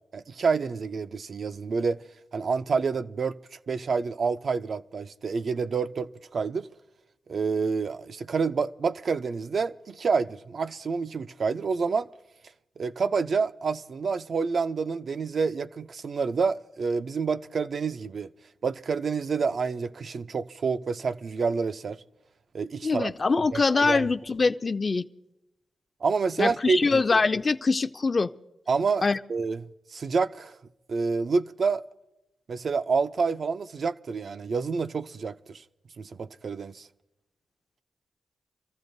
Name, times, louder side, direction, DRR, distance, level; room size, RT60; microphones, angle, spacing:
voice 1, 0.1-2.0 2.3-3.4 3.7-6.7 7.3-12.1 12.8-18.3 18.6-22.0 22.5-24.1 26.0-27.0 28.7-30.5 30.9-31.8 32.5-35.6 36.0-36.9, right 5 dB, 60° right, 0.4 m, -28 dB
voice 2, 22.8-25.0 26.4-28.3 29.0-29.2, left 4 dB, 40° left, 0.5 m, -23 dB
27.0 x 14.5 x 2.7 m
cardioid pair, 80°, 0 cm